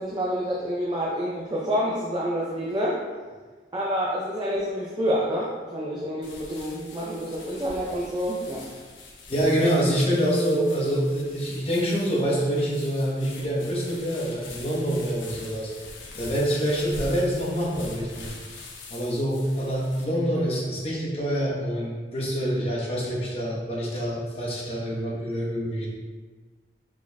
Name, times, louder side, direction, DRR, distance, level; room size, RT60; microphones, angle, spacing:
voice 1, 0.0-3.0 3.7-8.7, equal, 25° right, -5 dB, 0.4 m, -28 dB
sound 1, 6.2-20.0, left 2 dB, 90° left, 0.7 m, -43 dB
voice 2, 9.3-15.7 16.2-18.3 18.9-25.9, equal, 30° left, -4 dB, 0.9 m, -26 dB
4.6 x 4.2 x 2.3 m, 1.4 s
head